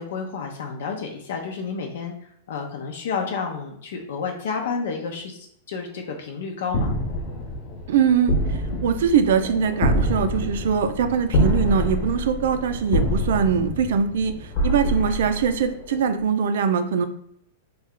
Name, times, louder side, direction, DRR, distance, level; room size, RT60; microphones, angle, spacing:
voice 1, 0.0-5.4 5.7-6.9, left 5 dB, 70° left, 2 dB, 0.6 m, -30 dB
sound 1, 6.7-16.0, equal, 40° left, 0.8 m, -26 dB
voice 2, 7.9-17.1, right 7 dB, 70° right, 9 dB, 0.4 m, -22 dB
3.2 x 2.3 x 3.6 m, 0.70 s
supercardioid pair, 160°, 0 cm